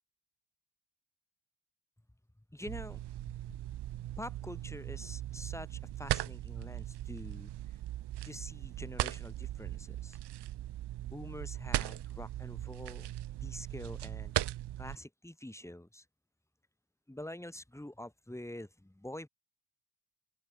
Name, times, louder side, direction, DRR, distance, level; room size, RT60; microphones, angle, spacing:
voice 1, 2.5-3.3 3.6-3.7 4.1-7.5 8.2-10.2 11.0-13.1 13.4-14.3 14.8-16.0 17.1-19.3, left 1 dB, 5° left, 7.6 m, -46 dB
sound 1, 2.7-15.0, right 13 dB, 55° right, 0.9 m, -39 dB
open air
cardioid pair, 80°, 48 cm